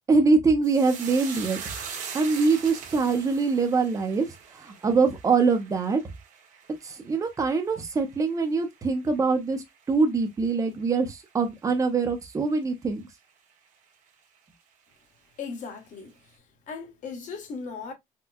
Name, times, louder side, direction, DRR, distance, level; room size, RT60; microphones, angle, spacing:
voice 1, 0.1-1.6 2.1-4.3 4.5-6.0 6.8-13.0, right 4 dB, 20° right, 0.7 m, -24 dB
sound 1, 0.6-9.2 9.5-10.2 10.5-10.7, right 6 dB, 55° right, 1.2 m, -42 dB
voice 2, 15.4-16.1 16.7-17.9, left 5 dB, 55° left, 1.4 m, -37 dB
4.4 x 2.3 x 2.3 m
cardioid pair, 150°, 16 cm